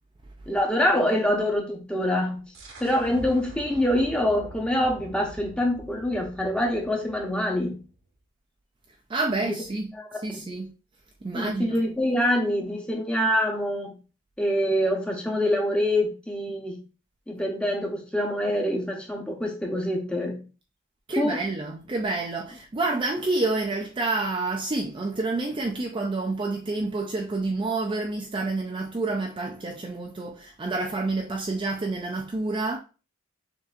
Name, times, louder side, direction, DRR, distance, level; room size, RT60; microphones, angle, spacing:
voice 1, 0.5-2.5 2.8-7.8 9.4-9.6 9.9-10.4 11.3-14.0 14.4-16.8 17.3-20.4 21.2-21.4, left 1 dB, 5° left, 0.8 m, -25 dB
sound 1, 2.5-8.0, right 1 dB, 70° right, 1.0 m, -44 dB
voice 2, 9.1-9.9 10.2-10.7 11.2-11.7 21.1-32.8, right 3 dB, 25° right, 0.4 m, -28 dB
6.4 x 2.7 x 2.4 m
head